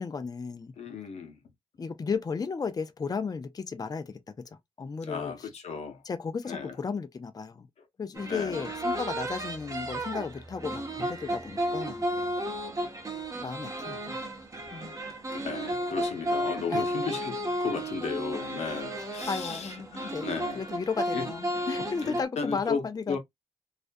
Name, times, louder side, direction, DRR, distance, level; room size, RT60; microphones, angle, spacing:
voice 1, 0.0-0.7 1.8-4.1 4.4-5.5 6.0-7.7 8.0-12.0 13.4-14.2 14.7-14.9 16.7-16.9 18.7-18.8 19.3-23.2, left 5 dB, 35° left, 0.4 m, -34 dB
voice 2, 0.8-1.4 5.0-6.0 6.5-6.8 8.2-8.6 15.4-20.7 21.1-21.3 22.0-22.8 23.1-23.2, left 5 dB, 85° left, 0.6 m, -35 dB
sound 1, 8.2-22.2, right 1 dB, 30° right, 0.8 m, -33 dB
2.4 x 2.1 x 2.5 m
cardioid pair, 60°, 11 cm